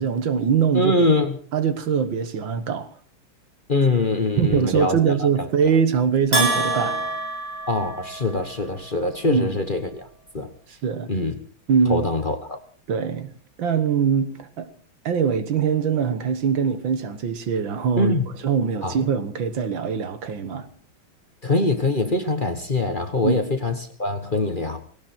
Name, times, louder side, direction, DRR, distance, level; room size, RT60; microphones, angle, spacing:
voice 1, 0.0-0.9 1.5-2.9 4.4-7.0 9.2-9.5 10.8-11.1 11.7-12.0 12.9-13.3 13.6-14.7 15.1-18.1 18.4-20.7 23.2-23.4, right 7 dB, 70° right, 2.0 m, -22 dB
voice 2, 0.7-1.4 3.7-5.5 7.7-10.1 10.3-10.5 11.1-11.4 11.9-12.6 18.0-18.3 18.8-19.0 21.4-24.8, left 2 dB, 30° left, 1.3 m, -23 dB
Bell, 6.3-8.5, right 2 dB, 20° right, 7.3 m, -25 dB
18.5 x 17.5 x 4.5 m
omnidirectional pair, 2.2 m